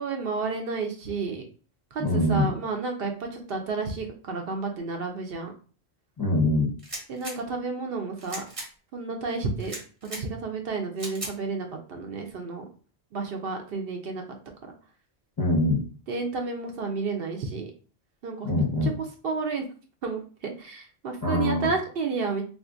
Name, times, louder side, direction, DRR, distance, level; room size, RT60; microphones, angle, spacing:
voice 1, 0.0-1.4 1.9-5.5 7.1-8.4 8.9-9.7 10.0-12.6 13.1-14.4 14.6-14.7 16.1-17.7 18.2-18.9 19.2-19.7 20.0-22.4, right 4 dB, 65° right, 3 dB, 0.8 m, -31 dB
voice 2, 2.0-2.5 6.2-6.7 15.4-15.8 18.4-18.9 21.2-21.7, left 2 dB, 25° left, -4 dB, 0.6 m, -23 dB
sound 1, 6.8-7.4 8.2-8.7 9.6-10.2 11.0-11.3, right 1 dB, 35° right, 0.9 m, -37 dB
3.6 x 2.5 x 2.5 m, 0.39 s
omnidirectional pair, 1.1 m